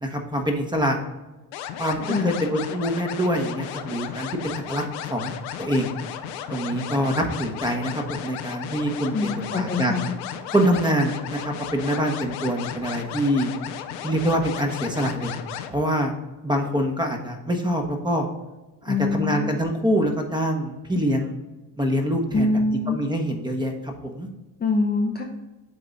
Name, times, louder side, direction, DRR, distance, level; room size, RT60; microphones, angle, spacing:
voice 1, 0.0-1.0 1.8-5.9 6.5-9.9 10.5-13.5 14.0-15.3 15.7-16.1 16.4-18.3 18.8-21.3 21.8-22.5 22.9-24.3, equal, 10° right, 3 dB, 1.3 m, -25 dB
sound 1, 1.5-15.7, left 9 dB, 75° left, 0.8 m, -35 dB
voice 2, 2.1-2.4 9.1-10.2 18.9-19.5 22.3-23.1 24.6-25.2, left 3 dB, 20° left, 1 dB, 0.8 m, -24 dB
7.7 x 4.0 x 3.8 m, 1.1 s
hypercardioid pair, 75°, 46 cm